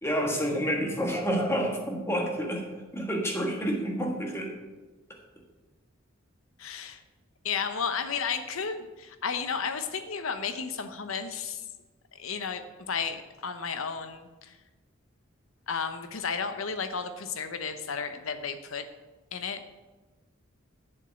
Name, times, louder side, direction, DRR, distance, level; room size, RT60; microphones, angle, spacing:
voice 1, 0.0-2.7 2.9-4.6, equal, 10° left, 1 dB, 1.5 m, -29 dB
voice 2, 6.6-7.0 7.4-11.7 12.1-14.6 15.7-18.9 19.3-19.7, left 6 dB, 80° left, 9 dB, 0.9 m, -33 dB
8.2 x 7.2 x 7.0 m, 1.2 s
head